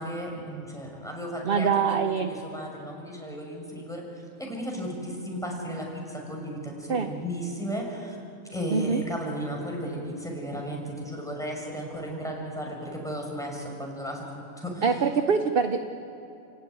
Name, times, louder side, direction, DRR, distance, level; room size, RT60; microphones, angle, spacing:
voice 1, 0.0-8.2 8.5-15.0, equal, ahead, -1 dB, 5.6 m, -35 dB
voice 2, 1.4-2.3 6.9-7.1 8.7-9.0 14.8-15.8, right 6 dB, 45° right, 7 dB, 1.0 m, -24 dB
29.5 x 17.5 x 9.5 m, 2.9 s
omnidirectional pair, 1.4 m